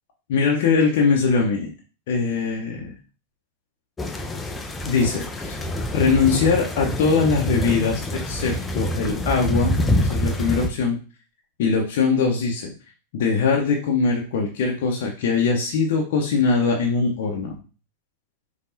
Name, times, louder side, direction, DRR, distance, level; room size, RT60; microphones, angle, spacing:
voice 1, 0.3-1.7 2.1-2.9 4.9-5.6 5.9-11.0 11.6-12.7 13.1-17.5, left 5 dB, 55° left, 0 dB, 0.8 m, -21 dB
sound 1, 4.0-10.7, left 1 dB, 15° left, 0.6 m, -26 dB
5.3 x 3.5 x 2.7 m, 0.35 s
figure-of-eight pair, 90°, 0 cm